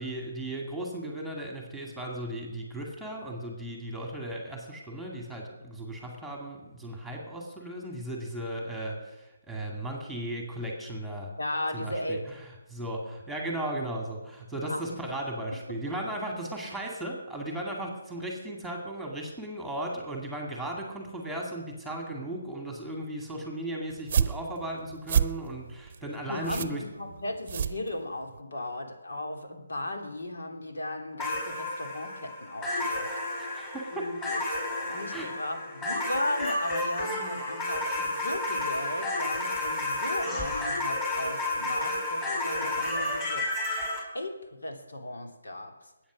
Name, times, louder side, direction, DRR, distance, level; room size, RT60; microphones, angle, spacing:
voice 1, 0.0-11.3 11.7-26.8 33.4-34.1 35.1-35.3, right 1 dB, ahead, 0 dB, 2.1 m, -36 dB
voice 2, 11.4-12.2 14.6-15.0 15.7-15.8 26.3-33.1 33.9-43.5 44.1-45.7, left 1 dB, 80° left, 3 dB, 2.8 m, -36 dB
sound 1, 23.9-28.4, right 7 dB, 40° right, 0.8 m, -30 dB
sound 2, 31.2-44.0, left 2 dB, 15° left, 5.1 m, -31 dB
21.0 x 8.7 x 6.2 m, 1.1 s
hypercardioid pair, 165°, 0 cm